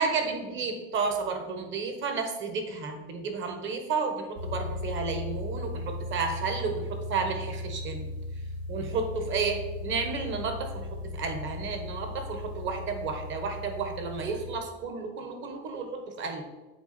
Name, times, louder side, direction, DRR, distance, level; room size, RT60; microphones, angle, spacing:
voice 1, 0.0-8.1 8.7-16.4, right 4 dB, 40° right, 5 dB, 1.3 m, -32 dB
sound 1, 4.3-14.6, left 2 dB, 85° right, 1.7 m, -37 dB
8.2 x 3.9 x 4.3 m, 1.2 s
supercardioid pair, 120°, 31 cm